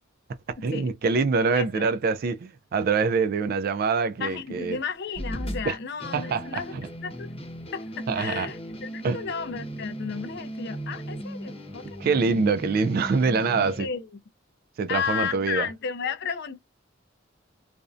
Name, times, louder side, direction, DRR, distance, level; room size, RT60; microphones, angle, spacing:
voice 1, 0.5-4.8 5.6-5.8 6.1-6.9 8.1-8.5 9.0-9.2 12.0-13.9 14.8-15.7, right 4 dB, 50° right, 0.3 m, -25 dB
voice 2, 1.5-1.8 4.2-7.3 7.7-12.0 13.8-14.1 14.9-16.6, left 6 dB, 55° left, 0.4 m, -33 dB
sound 1, 5.1-13.9, equal, 30° left, 0.8 m, -37 dB
2.5 x 2.0 x 2.4 m
head